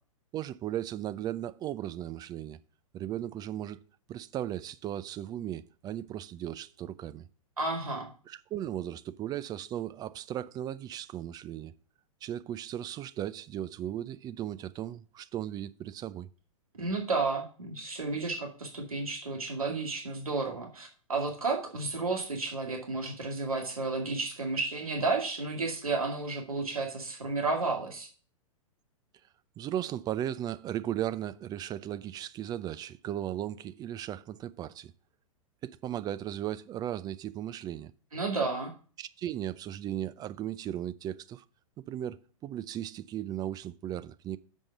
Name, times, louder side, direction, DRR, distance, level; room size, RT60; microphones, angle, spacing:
voice 1, 0.3-2.6 2.9-3.8 4.1-7.2 8.3-11.7 12.2-16.3 29.6-34.9 35.6-37.9 39.0-41.4 41.9-42.2 42.4-44.4, right 11 dB, 20° right, 0.4 m, -36 dB
voice 2, 7.6-8.1 16.8-28.1 38.1-38.7, right 3 dB, 85° right, 2.1 m, -32 dB
7.2 x 5.4 x 6.6 m
figure-of-eight pair, 105°, 18 cm